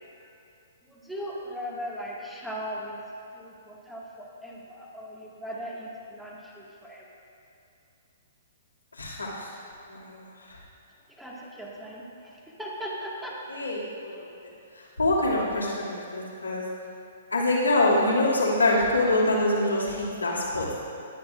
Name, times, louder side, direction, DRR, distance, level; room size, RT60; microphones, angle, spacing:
voice 1, 0.9-3.0 3.3-7.0 11.2-13.7, equal, 5° right, -5 dB, 1.8 m, -38 dB
voice 2, 9.0-9.5 9.9-10.6 13.5-14.1 15.0-16.6 17.3-20.7, left 2 dB, 90° left, -6 dB, 2.4 m, -25 dB
19.5 x 8.0 x 2.5 m, 2.6 s
figure-of-eight pair, 120°, 0 cm